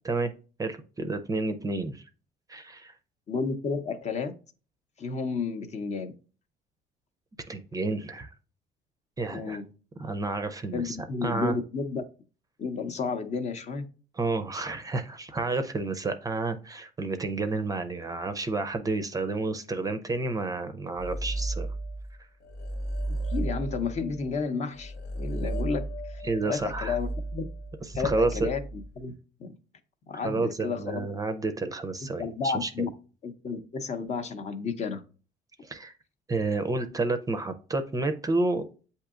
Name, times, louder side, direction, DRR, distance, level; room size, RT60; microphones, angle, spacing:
voice 1, 0.6-2.0 2.5-2.9 7.5-8.3 9.2-9.6 10.0-11.0 11.2-11.5 14.1-21.7 26.2-27.0 27.8-28.5 30.1-32.9 35.6-35.9 36.3-38.7, right 3 dB, 20° right, 8 dB, 0.5 m, -30 dB
voice 2, 3.3-4.3 5.0-6.1 9.3-9.6 10.7-12.0 12.6-13.9 23.3-25.8 26.1-27.4 27.9-28.6 29.0-29.1 29.4-29.5 30.1-31.1 32.2-32.9 33.2-35.0, left 5 dB, 40° left, 8 dB, 0.7 m, -31 dB
sound 1, 21.0-22.1 22.4-29.0, right 2 dB, 80° left, 0.8 m, -34 dB
7.9 x 2.7 x 2.4 m, 0.36 s
cardioid pair, 110°, 17 cm